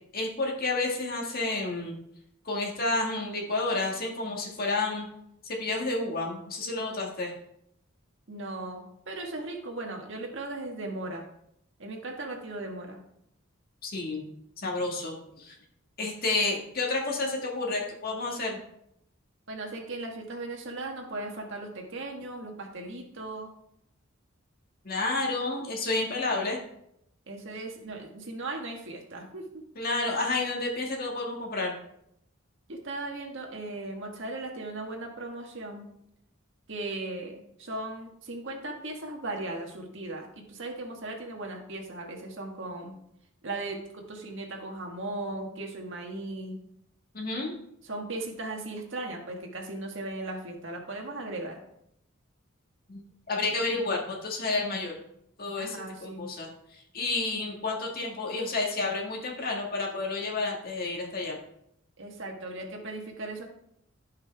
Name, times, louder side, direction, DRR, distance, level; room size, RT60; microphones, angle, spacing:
voice 1, 0.1-1.9 2.5-5.1 5.4-7.3 13.8-14.2 14.6-15.5 16.0-18.6 24.8-26.6 29.8-31.7 47.1-47.5 52.9-53.0 53.3-54.9 55.4-61.4, left 3 dB, 50° left, -1 dB, 1.9 m, -30 dB
voice 2, 8.3-11.3 11.8-13.0 19.5-23.5 27.3-29.6 32.7-35.8 36.7-43.0 43.4-46.6 47.8-51.6 55.6-56.3 62.0-63.4, right 2 dB, 65° right, 1 dB, 1.7 m, -37 dB
16.0 x 5.7 x 3.5 m, 0.76 s
head